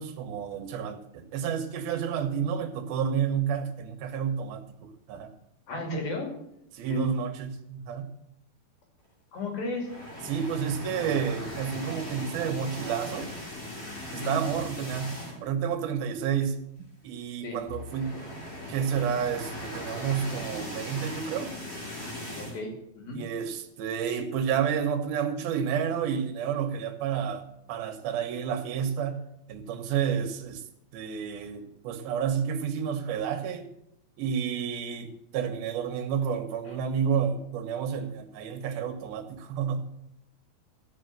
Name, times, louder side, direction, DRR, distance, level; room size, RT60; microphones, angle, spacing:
voice 1, 0.0-5.3 6.7-8.1 10.2-13.3 14.1-15.2 15.4-16.6 17.0-18.1 18.7-21.5 23.1-29.2 29.5-30.6 30.9-33.7 34.2-39.8, right 7 dB, 75° right, 7 dB, 2.9 m, -30 dB
voice 2, 5.7-6.3 6.9-7.1 9.3-9.9 14.1-14.4 17.4-17.6 22.4-23.2 36.7-36.8, left 2 dB, 70° left, 1 dB, 4.4 m, -34 dB
sound 1, 9.8-15.6 16.0-16.1 16.4-16.5 17.6-22.6, left 1 dB, 40° left, 3.5 m, -39 dB
15.0 x 5.9 x 7.9 m, 0.78 s
omnidirectional pair, 4.4 m